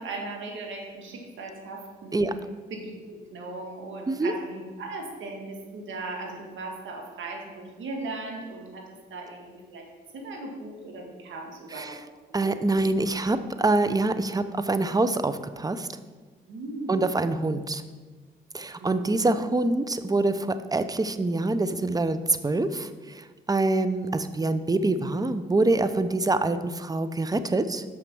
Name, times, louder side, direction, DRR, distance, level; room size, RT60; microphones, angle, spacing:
voice 1, 0.0-2.3 2.7-9.9 10.1-12.0 12.4-12.5 13.1-13.2 16.5-17.1 18.8-19.3, right 2 dB, 70° right, 0 dB, 1.9 m, -38 dB
voice 2, 12.3-15.9 16.9-17.8 18.5-27.8, right 2 dB, 20° right, 11 dB, 0.6 m, -25 dB
6.5 x 5.9 x 6.1 m, 1.4 s
supercardioid pair, 55°, 20 cm